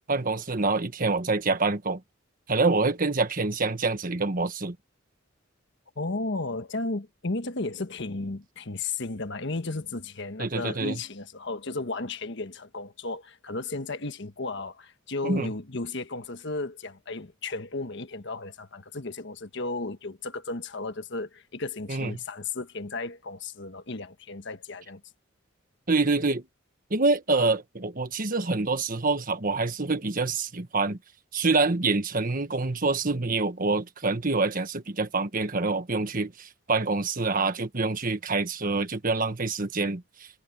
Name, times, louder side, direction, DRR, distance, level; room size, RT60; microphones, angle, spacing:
voice 1, 0.1-2.0 2.5-4.7 10.4-11.0 15.2-15.5 21.9-22.1 25.9-26.4 26.9-31.0 31.3-40.0, right 3 dB, 45° right, 1.4 m, -26 dB
voice 2, 6.0-25.0, left 3 dB, 60° left, 1.4 m, -34 dB
head